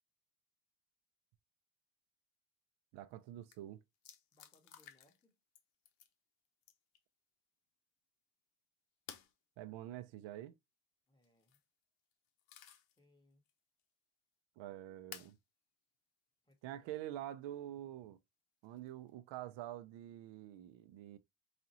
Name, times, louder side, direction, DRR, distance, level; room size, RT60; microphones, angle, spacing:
voice 1, 2.9-3.8 9.6-10.5 14.6-15.4 16.6-18.2 18.6-21.2, right 13 dB, 70° right, 0.6 m, -47 dB
sound 1, 3.1-3.2 3.4-3.6 4.0-5.2 5.5-6.1 6.6-7.0 9.1-9.3 11.2-11.6 12.1-13.0 13.5-13.6 15.1-15.4 16.5-16.6 18.6-19.1, left 10 dB, 80° left, 0.9 m, -55 dB
voice 2, 4.3-5.4 11.1-11.6 13.0-13.4 16.4-17.0, left 1 dB, 10° left, 1.4 m, -72 dB
5.0 x 2.5 x 2.8 m
cardioid pair, 105°, 46 cm